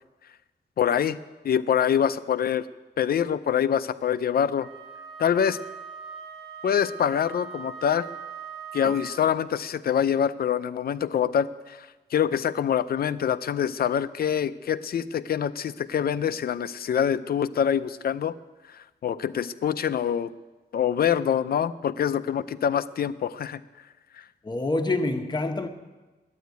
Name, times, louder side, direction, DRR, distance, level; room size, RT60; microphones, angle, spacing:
voice 1, 0.8-1.2 1.4-2.7 3.0-4.7 5.2-5.6 6.6-8.1 8.7-18.3 18.7-20.3 20.7-23.6 24.1-24.2, left 8 dB, 60° left, 0.5 m, -25 dB
Wind instrument woodwind instrument, 4.6-9.3, right 6 dB, 70° right, 2.0 m, -41 dB
voice 2, 24.4-25.7, left 2 dB, 25° left, 0.9 m, -26 dB
11.5 x 9.3 x 9.3 m
wide cardioid pair, 175°, 18 cm